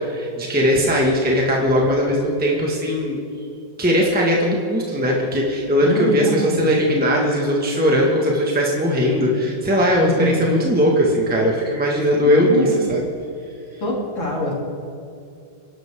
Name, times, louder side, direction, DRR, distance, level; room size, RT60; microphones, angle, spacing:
voice 1, 0.0-3.2 3.8-13.0, equal, 5° right, -2 dB, 1.8 m, -19 dB
voice 2, 5.8-6.7 9.0-9.3 10.0-10.5 12.2-12.8 13.8-14.5, left 1 dB, 90° left, -4 dB, 4.2 m, -25 dB
28.5 x 11.5 x 3.8 m, 2.6 s
omnidirectional pair, 2.1 m